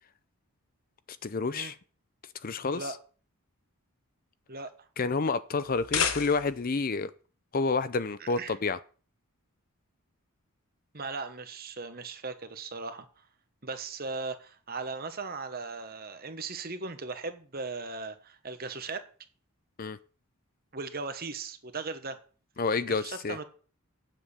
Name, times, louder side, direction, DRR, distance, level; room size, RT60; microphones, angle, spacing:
voice 1, 1.2-1.8 2.4-2.9 5.0-7.1 7.5-8.8 19.8-20.0 22.6-23.4, left 4 dB, 40° left, 0.5 m, -29 dB
sound 1, 5.6-6.8, left 7 dB, 70° left, 1.2 m, -31 dB
voice 2, 8.2-8.6 10.9-13.1 13.6-19.1 20.7-22.2 22.7-23.4, right 3 dB, 45° right, 1.3 m, -38 dB
8.7 x 7.6 x 7.1 m
head